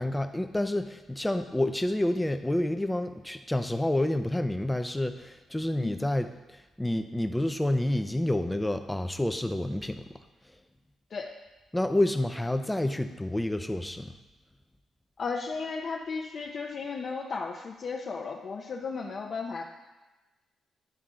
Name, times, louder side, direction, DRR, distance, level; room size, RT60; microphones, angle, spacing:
voice 1, 0.0-10.0 11.7-14.1, left 1 dB, 10° left, 8 dB, 0.5 m, -29 dB
voice 2, 5.8-6.1 11.1-11.3 15.2-19.6, left 4 dB, 55° left, 1 dB, 0.6 m, -35 dB
10.0 x 3.6 x 3.7 m, 1.1 s
cardioid pair, 85°, 0 cm